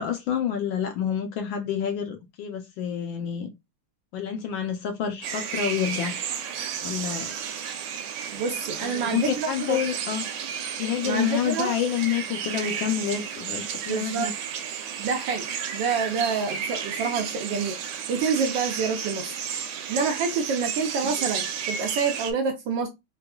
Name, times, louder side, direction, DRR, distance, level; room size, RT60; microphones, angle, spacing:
voice 1, 0.0-3.5 4.1-6.1 6.8-7.3 8.8-10.2 10.8-14.3, left 9 dB, 75° left, 1.2 m, -28 dB
sound 1, 5.2-22.3, right 7 dB, 90° right, 1.5 m, -33 dB
voice 2, 8.3-9.8 11.0-11.7 13.9-14.3 15.0-15.5 15.7-17.8 18.1-19.4 19.9-22.9, right 5 dB, 75° right, 1.1 m, -27 dB
4.7 x 2.3 x 2.2 m
omnidirectional pair, 2.4 m